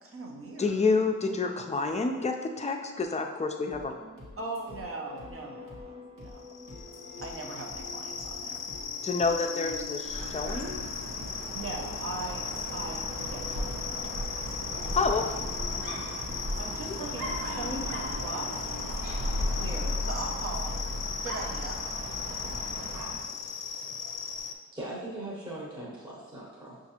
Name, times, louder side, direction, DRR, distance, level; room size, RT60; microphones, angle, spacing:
voice 1, 0.0-0.7 4.4-6.4 7.2-8.7 11.5-13.0 13.3-14.6 16.6-18.5 19.4-20.8 21.2-21.8, right 2 dB, 45° right, 0 dB, 0.8 m, -39 dB
voice 2, 0.6-3.9 9.0-10.9 14.9-15.4 15.7-16.0, left 4 dB, 20° left, 4 dB, 0.4 m, -29 dB
sound 1, 3.7-20.8, left 3 dB, 70° right, 1.2 m, -47 dB
sound 2, 6.4-24.5, left 6 dB, 90° left, 0.5 m, -37 dB
Dog, 10.0-23.3, equal, 90° right, 0.7 m, -36 dB
voice 3, 24.7-26.8, right 1 dB, 15° right, -5 dB, 0.9 m, -40 dB
5.8 x 2.5 x 2.8 m, 1.4 s
cardioid pair, 65°, 32 cm